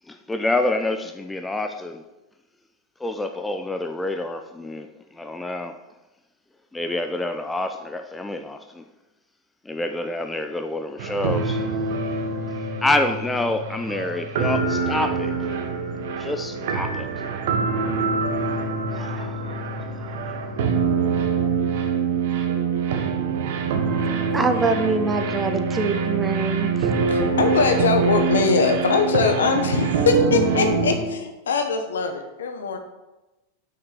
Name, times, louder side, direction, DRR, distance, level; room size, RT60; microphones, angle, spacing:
voice 1, 0.1-2.0 3.0-5.8 6.7-8.8 9.6-11.6 12.8-15.4 16.2-17.1 18.9-19.5 19.9-20.0, left 2 dB, 10° left, 0.6 m, -27 dB
sound 1, 11.0-31.0, right 5 dB, 65° right, 1.3 m, -25 dB
voice 2, 24.3-27.1, right 3 dB, 15° right, 1.0 m, -24 dB
voice 3, 27.1-32.8, left 4 dB, 80° left, 1.2 m, -22 dB
6.4 x 5.7 x 6.7 m
hypercardioid pair, 95°, 0 cm